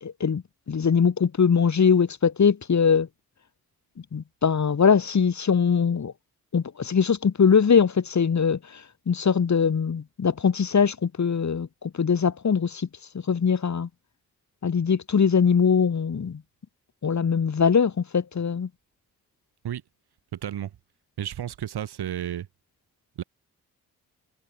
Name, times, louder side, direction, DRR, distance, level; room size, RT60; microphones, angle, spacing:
voice 1, 0.0-3.1 4.1-6.1 6.5-8.6 9.1-12.9 13.3-13.9 14.6-16.4 17.0-18.7, left 6 dB, 45° left, 1.7 m, -22 dB
voice 2, 20.3-20.7 21.2-22.5 23.2-23.3, right 10 dB, 80° right, 6.5 m, -32 dB
supercardioid pair, 45°, 39 cm